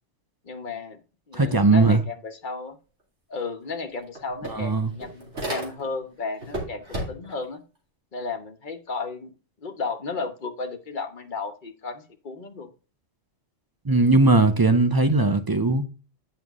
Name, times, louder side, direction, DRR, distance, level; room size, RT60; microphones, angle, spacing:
voice 1, 0.4-1.0 1.3-2.8 3.3-7.6 8.1-9.3 9.6-12.7, left 4 dB, 45° left, 1.2 m, -34 dB
voice 2, 1.3-2.0 4.5-4.9 13.8-15.8, right 3 dB, 30° right, 0.4 m, -19 dB
sound 1, 3.4-3.5 3.8-6.1 6.4-7.4, right 1 dB, 65° right, 3.0 m, -34 dB
9.4 x 5.7 x 3.6 m
omnidirectional pair, 1.3 m